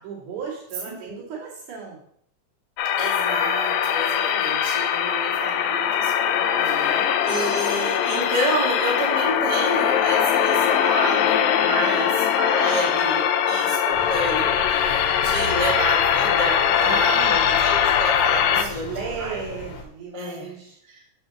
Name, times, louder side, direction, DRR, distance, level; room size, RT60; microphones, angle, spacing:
voice 1, 0.0-2.0 6.6-7.1 11.7-12.2 16.8-17.7 18.5-20.8, right 6 dB, 75° right, -5 dB, 4.0 m, -36 dB
sound 1, 2.8-18.6, left 9 dB, 75° left, 1.7 m, -21 dB
voice 2, 2.9-6.9 7.2-19.4 20.1-20.5 20.9-21.0, right 1 dB, 15° right, -3 dB, 1.2 m, -29 dB
sound 2, 13.9-19.8, left 2 dB, 60° left, 2.2 m, -35 dB
7.6 x 4.2 x 6.4 m, 0.68 s
omnidirectional pair, 3.6 m